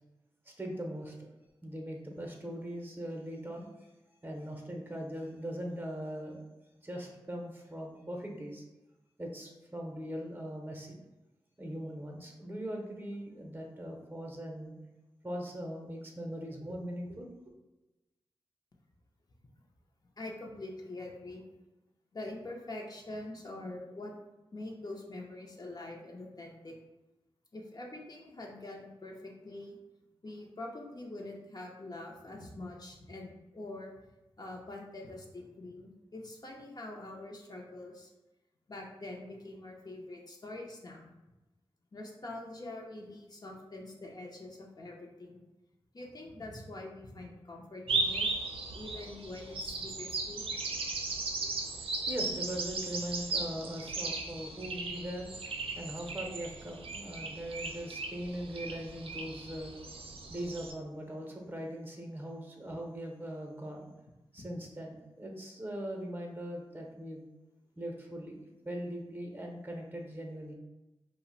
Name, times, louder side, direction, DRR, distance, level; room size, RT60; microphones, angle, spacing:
voice 1, 0.4-1.3 1.6-3.9 4.2-6.4 6.8-8.6 9.2-11.0 11.6-14.7 15.2-17.3 51.0-63.9 64.3-67.2 67.8-68.4 68.6-70.5, equal, 20° right, 0 dB, 0.7 m, -40 dB
voice 2, 20.2-21.4 22.1-24.1 24.5-26.8 27.5-29.8 30.2-33.9 34.4-38.1 38.7-41.2 41.9-45.4 45.9-48.3 48.7-50.4 60.1-60.2 64.4-64.5, left 2 dB, 40° left, -1 dB, 0.6 m, -44 dB
sound 1, 47.9-60.7, right 3 dB, 65° right, 0.4 m, -37 dB
2.4 x 2.1 x 3.8 m, 1.0 s
cardioid pair, 45°, 10 cm